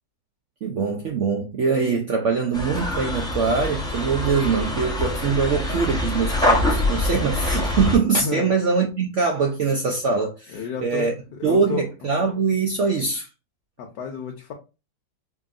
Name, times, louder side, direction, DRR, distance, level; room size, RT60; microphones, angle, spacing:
voice 1, 0.6-11.1 11.4-13.3, right 5 dB, 80° right, 0.6 m, -23 dB
sound 1, 2.5-8.0, left 1 dB, 5° left, 0.6 m, -24 dB
voice 2, 8.2-8.5 10.5-12.1 13.8-14.5, left 5 dB, 75° left, 1.4 m, -32 dB
4.9 x 2.8 x 2.4 m
omnidirectional pair, 1.9 m